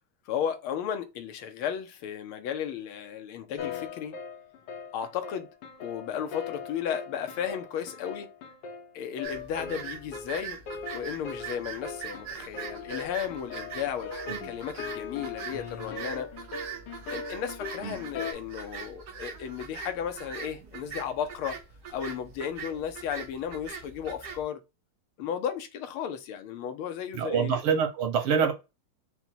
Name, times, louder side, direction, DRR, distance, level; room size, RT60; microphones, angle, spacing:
voice 1, 0.3-4.2 4.9-5.5 5.8-8.3 8.9-10.6 10.9-16.3 17.1-21.6 21.9-24.6 25.2-27.6, left 8 dB, 85° left, 1.7 m, -34 dB
sound 1, 3.6-18.3, left 6 dB, 65° left, 1.2 m, -40 dB
sound 2, 9.2-24.4, right 7 dB, 55° right, 1.4 m, -42 dB
voice 2, 27.1-28.5, right 6 dB, 85° right, 2.0 m, -26 dB
5.4 x 2.2 x 4.4 m
omnidirectional pair, 2.3 m